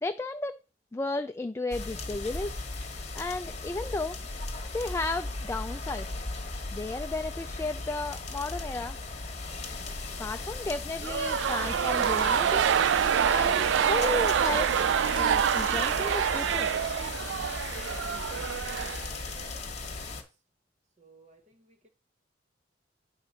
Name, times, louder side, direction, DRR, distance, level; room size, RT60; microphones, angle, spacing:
voice 1, 0.0-0.5 0.9-2.6 3.1-4.2 4.7-6.2 6.7-9.0 10.2-12.6 13.2-14.7 15.2-16.7, left 2 dB, 15° left, 0.3 m, -33 dB
sound 1, 1.7-20.2, left 3 dB, 35° left, 1.3 m, -37 dB
sound 2, 11.0-19.5, right 8 dB, 75° right, 0.3 m, -26 dB
voice 2, 21.0-21.9, right 3 dB, 35° right, 1.1 m, -59 dB
9.8 x 3.8 x 5.6 m
head